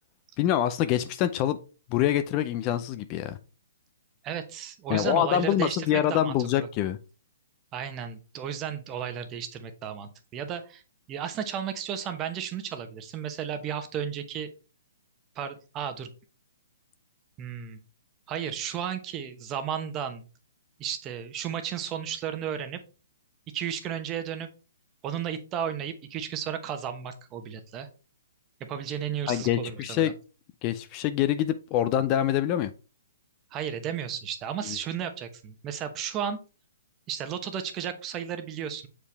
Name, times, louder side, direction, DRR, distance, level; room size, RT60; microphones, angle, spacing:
voice 1, 0.4-1.6 1.9-3.4 4.9-7.0 29.3-30.1 30.6-32.7 34.6-34.8, left 11 dB, 30° left, 12 dB, 0.5 m, -25 dB
voice 2, 4.2-6.7 7.7-10.8 11.1-14.5 15.3-16.1 17.4-17.8 18.3-20.3 20.8-22.8 23.5-24.5 25.0-27.9 28.7-30.1 33.5-36.4 37.1-38.9, right 8 dB, 25° right, 8 dB, 1.0 m, -34 dB
6.7 x 4.9 x 3.4 m, 0.34 s
hypercardioid pair, 145°, 0 cm